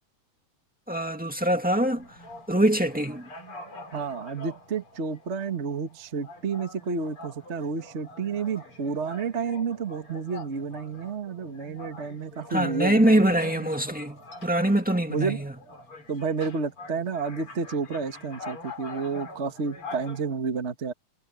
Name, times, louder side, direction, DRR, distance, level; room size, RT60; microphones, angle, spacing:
voice 1, 0.9-2.0 2.5-3.2 12.5-15.5, right 1 dB, 10° right, 0.4 m, -23 dB
sound 1, 1.5-20.3, left 2 dB, 40° left, 5.7 m, -45 dB
voice 2, 3.9-13.7 15.1-15.4 16.1-20.9, right 5 dB, 45° right, 0.9 m, -30 dB
omnidirectional pair, 3.9 m